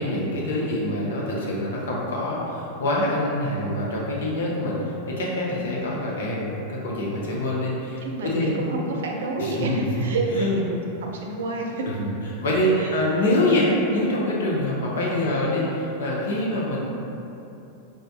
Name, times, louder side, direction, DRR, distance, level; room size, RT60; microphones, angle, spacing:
voice 1, 0.0-8.6 9.4-10.0 10.3-10.6 11.8-12.1 12.4-15.6 16.0-16.8, left 1 dB, 80° left, -4 dB, 0.7 m, -25 dB
voice 2, 5.4-6.1 7.2-7.4 8.0-11.9 12.8-13.1 15.2-15.5, right 2 dB, 80° right, 0 dB, 0.5 m, -30 dB
4.7 x 2.2 x 2.7 m, 2.8 s
hypercardioid pair, 115°, 0 cm